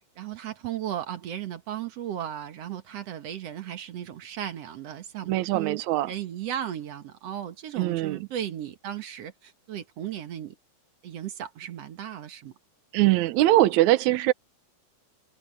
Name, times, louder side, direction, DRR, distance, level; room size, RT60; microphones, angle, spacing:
voice 1, 0.2-10.6 11.0-12.5, right 10 dB, 60° right, 1.8 m, -35 dB
voice 2, 5.3-6.1 7.8-8.3 12.9-14.3, right 16 dB, 90° right, 1.6 m, -22 dB
omnidirectional pair, 4.4 m